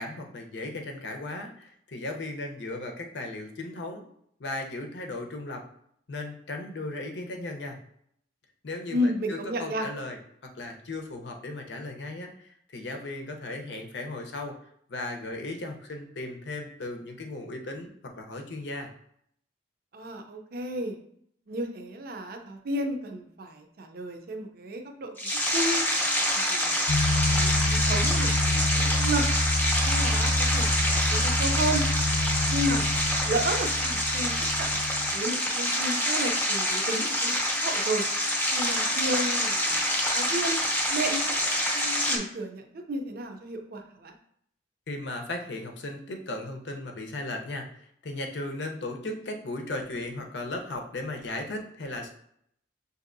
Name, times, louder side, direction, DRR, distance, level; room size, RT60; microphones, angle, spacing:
voice 1, 0.0-4.0 4.4-5.6 6.1-7.8 8.6-14.5 14.9-18.9 44.9-52.1, left 2 dB, 75° left, 3 dB, 0.7 m, -36 dB
voice 2, 8.9-9.9 19.9-21.0 21.5-25.1 25.5-25.8 26.5-26.9 27.3-29.2 29.8-31.8 32.5-32.9 33.2-34.7 35.1-38.0 38.5-39.8 40.1-40.6 40.9-41.4 41.7-44.1, right 1 dB, 55° right, 4 dB, 0.5 m, -32 dB
sound 1, 25.2-42.2, equal, 10° left, 0.7 m, -27 dB
sound 2, 26.9-35.1, left 1 dB, 40° left, 0.4 m, -27 dB
6.5 x 2.7 x 2.6 m, 0.70 s
head